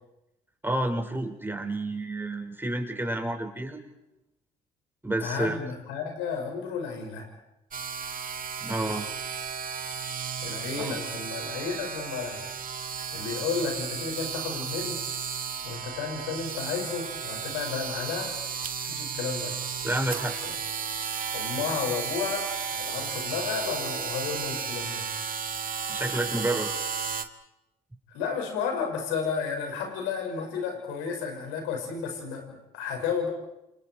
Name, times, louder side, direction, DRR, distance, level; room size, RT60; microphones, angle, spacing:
voice 1, 0.6-3.8 5.0-5.6 8.6-9.0 10.8-11.0 19.8-20.4 25.9-26.7, right 1 dB, 10° right, 3 dB, 5.4 m, -30 dB
voice 2, 5.2-7.3 10.4-12.4 13.1-15.0 15.6-18.3 18.8-19.5 20.4-20.5 21.3-25.1 28.1-33.3, left 6 dB, 80° left, 3 dB, 6.1 m, -32 dB
sound 1, 7.7-27.2, right 6 dB, 45° right, 2.0 m, -34 dB
29.0 x 28.0 x 4.7 m, 0.90 s
hypercardioid pair, 55°, 20 cm